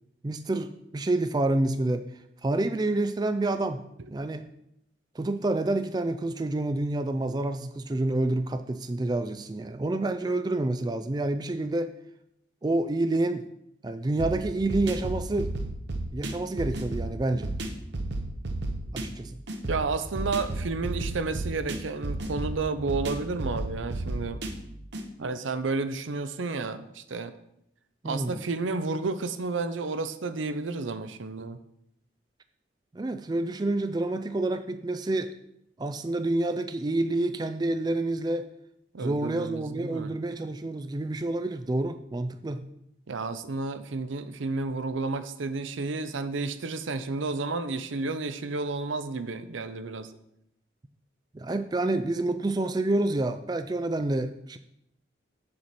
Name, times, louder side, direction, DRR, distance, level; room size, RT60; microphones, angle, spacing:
voice 1, 0.2-2.1 2.4-4.4 5.2-11.9 12.6-13.5 13.8-15.5 16.1-17.5 18.9-19.4 28.0-28.4 32.9-35.3 35.8-38.5 39.0-42.7 51.3-54.6, right 2 dB, 20° right, 9 dB, 0.3 m, -28 dB
sound 1, 14.2-25.1, right 2 dB, 65° right, 1.0 m, -33 dB
voice 2, 19.7-24.4 25.2-27.3 28.0-31.6 38.9-40.2 43.1-50.1, right 3 dB, 85° right, 11 dB, 0.6 m, -31 dB
7.6 x 7.6 x 4.2 m, 0.78 s
head